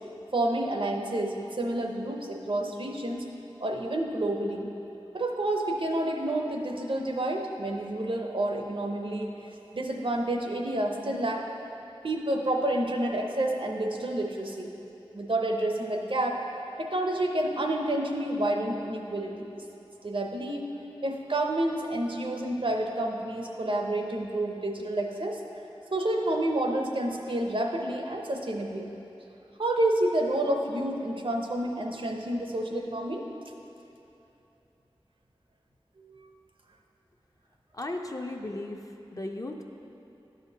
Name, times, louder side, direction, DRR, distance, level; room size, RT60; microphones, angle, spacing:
voice 1, 0.3-3.3 3.6-4.7 5.1-9.3 9.7-11.4 12.0-14.7 15.1-16.4 16.8-19.6 20.0-20.6 21.0-25.4 25.9-28.9 29.6-33.2 36.0-36.1, right 1 dB, 65° right, 2 dB, 0.6 m, -29 dB
voice 2, 37.7-39.6, left 2 dB, 35° left, 3 dB, 0.5 m, -36 dB
11.5 x 4.9 x 2.8 m, 2.9 s
wide cardioid pair, 55°, 10 cm